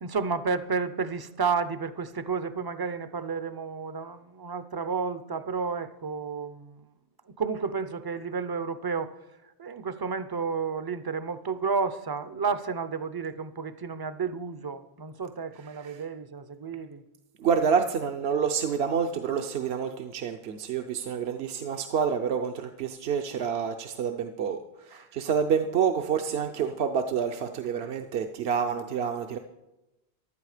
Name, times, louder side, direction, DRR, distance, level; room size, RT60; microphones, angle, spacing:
voice 1, 0.0-6.9 7.4-9.1 9.6-17.0 24.9-25.1, right 5 dB, 30° right, 0.4 m, -31 dB
voice 2, 17.4-29.4, right 7 dB, 70° right, 0.9 m, -28 dB
15.5 x 11.5 x 4.9 m
omnidirectional pair, 1.1 m